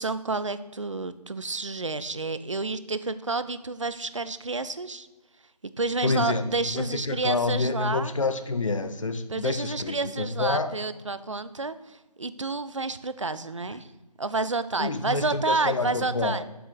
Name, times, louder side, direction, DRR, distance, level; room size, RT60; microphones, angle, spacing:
voice 1, 0.0-5.1 5.8-8.1 9.3-13.9 14.2-16.4, right 3 dB, 50° right, 13 dB, 0.4 m, -30 dB
voice 2, 6.0-10.8 14.8-16.4, left 3 dB, 50° left, 10 dB, 0.6 m, -28 dB
7.7 x 6.2 x 3.9 m, 1.1 s
figure-of-eight pair, 160°, 21 cm